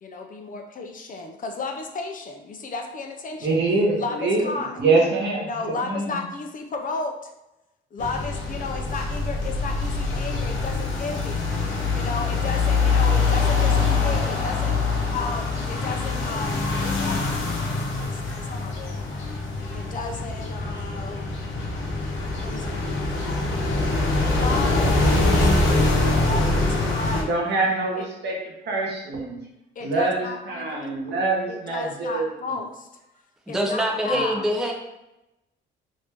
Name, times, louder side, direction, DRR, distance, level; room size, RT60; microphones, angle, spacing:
voice 1, 0.0-3.6 4.0-4.8 5.4-7.3 7.9-11.5 11.9-14.8 15.1-17.5 17.9-19.1 19.7-21.3 22.4-23.5 24.3-27.4 27.9-28.1 29.8-31.1 31.5-32.9 33.5-34.4, left 3 dB, 40° left, 3 dB, 0.5 m, -33 dB
voice 2, 3.4-4.5 4.8-5.5 5.8-6.2 24.8-25.0 27.1-28.4 28.7-29.4 29.8-32.3 34.1-34.3, right 3 dB, 60° right, -2 dB, 1.1 m, -24 dB
sound 1, 8.0-27.2, left 3 dB, 80° left, 0.9 m, -24 dB
voice 3, 33.5-34.7, equal, 5° right, 0 dB, 0.5 m, -24 dB
3.1 x 2.7 x 3.3 m, 0.93 s
cardioid pair, 90°, 20 cm